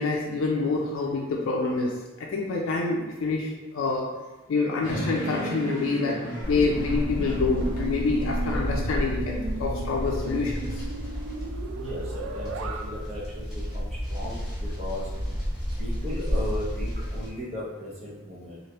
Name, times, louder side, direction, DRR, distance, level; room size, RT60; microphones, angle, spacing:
voice 1, 0.0-4.1 4.5-10.8, left 3 dB, 80° left, -2 dB, 0.4 m, -27 dB
sound 1, 4.8-11.2, left 1 dB, 45° left, 1.0 m, -39 dB
sound 2, 4.9-12.8, right 3 dB, 75° right, 0.3 m, -37 dB
sound 3, 6.4-17.3, equal, 5° right, 1.0 m, -31 dB
voice 2, 11.7-15.1 15.8-18.6, left 1 dB, 30° right, -5 dB, 0.6 m, -36 dB
3.2 x 2.5 x 2.9 m, 1.1 s
head